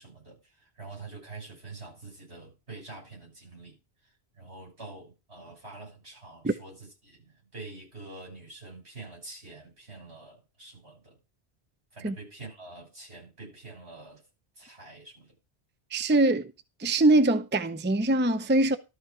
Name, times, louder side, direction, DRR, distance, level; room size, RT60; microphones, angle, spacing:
voice 1, 0.0-3.8 4.4-11.2 11.9-14.2 14.6-15.3, right 3 dB, 80° right, 7.1 m, -46 dB
voice 2, 15.9-16.5 16.8-18.8, right 2 dB, 15° right, 0.6 m, -23 dB
13.0 x 5.6 x 4.9 m
omnidirectional pair, 1.1 m